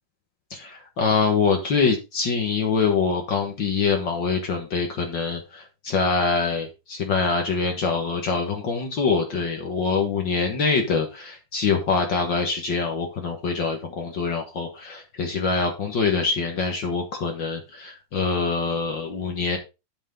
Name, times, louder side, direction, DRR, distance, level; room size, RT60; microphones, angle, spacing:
voice 1, 0.5-19.6, left 5 dB, 75° left, 3 dB, 1.0 m, -24 dB
8.8 x 8.3 x 3.8 m, 0.27 s
omnidirectional pair, 4.6 m